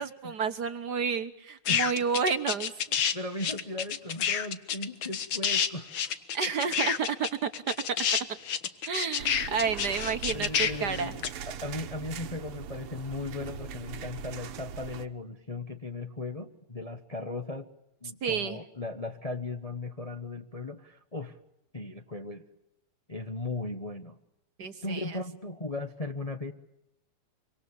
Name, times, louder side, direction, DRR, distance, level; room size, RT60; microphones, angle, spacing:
voice 1, 0.0-3.0 6.3-7.8 8.9-11.1 18.2-18.6 24.6-25.2, right 6 dB, 55° right, 9 dB, 1.5 m, -30 dB
sound 1, 1.6-3.1 3.4-11.3, left 8 dB, 65° left, 2.0 m, -29 dB
voice 2, 3.1-5.9 6.6-6.7 9.4-9.9 10.3-17.7 18.0-21.4 21.7-22.4 23.1-24.2 24.8-26.5, left 2 dB, 20° left, 6 dB, 1.0 m, -37 dB
sound 2, 9.2-15.1, right 7 dB, 90° right, 2.1 m, -41 dB
25.5 x 25.5 x 7.1 m, 0.83 s
omnidirectional pair, 2.4 m